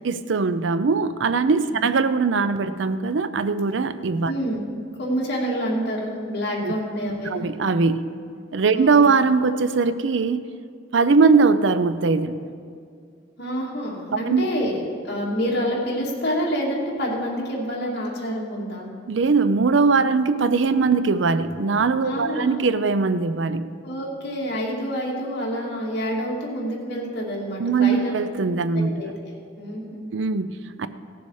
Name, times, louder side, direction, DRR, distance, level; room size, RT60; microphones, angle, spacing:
voice 1, 0.0-4.3 6.6-6.7 7.2-8.2 8.5-10.5 10.9-12.5 14.1-14.4 19.1-23.7 27.6-29.2 30.1-30.9, right 4 dB, 80° right, 12 dB, 0.5 m, -21 dB
voice 2, 4.2-4.6 5.0-7.4 8.7-8.9 13.4-18.9 22.0-22.5 23.8-28.1 28.7-29.3 29.6-30.1, equal, 60° left, -4 dB, 2.4 m, -27 dB
17.0 x 7.0 x 4.8 m, 2.3 s
head